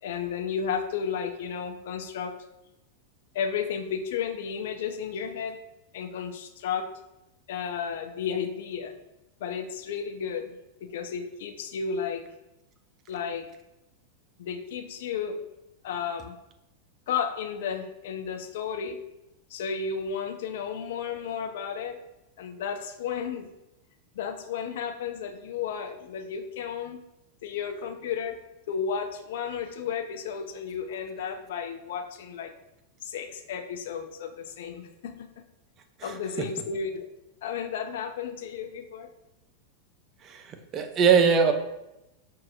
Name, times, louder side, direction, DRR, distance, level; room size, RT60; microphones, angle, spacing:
voice 1, 0.0-2.3 3.3-5.6 5.9-6.9 7.5-9.0 9.4-10.5 10.8-12.2 13.1-13.5 14.4-15.4 15.8-16.4 17.1-19.0 19.5-22.0 22.4-23.5 24.2-27.0 27.4-28.4 28.7-32.5 33.0-35.2 36.0-37.1 37.4-39.1, left 7 dB, 55° left, 6 dB, 0.4 m, -33 dB
voice 2, 40.2-41.5, right 6 dB, 30° right, 6 dB, 0.4 m, -22 dB
5.8 x 2.4 x 2.9 m, 0.91 s
figure-of-eight pair, 90°, 0 cm